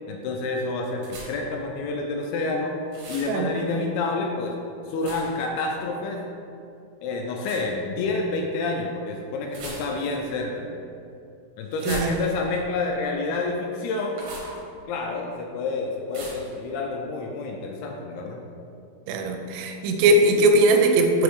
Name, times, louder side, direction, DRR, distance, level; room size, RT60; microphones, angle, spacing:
voice 1, 0.1-2.7 3.1-4.5 4.9-6.2 7.0-10.7 11.6-14.3 14.9-18.4, left 3 dB, 85° left, 1 dB, 2.3 m, -28 dB
sound 1, 1.0-1.5 2.9-3.4 5.0-5.5 7.4-7.7 9.5-10.2 11.7-12.6 14.1-14.6 16.1-16.5, right 1 dB, 70° right, 1.8 m, -38 dB
voice 2, 19.1-21.2, right 2 dB, 85° right, 4 dB, 2.7 m, -19 dB
6.1 x 5.0 x 3.1 m, 2.6 s
omnidirectional pair, 4.8 m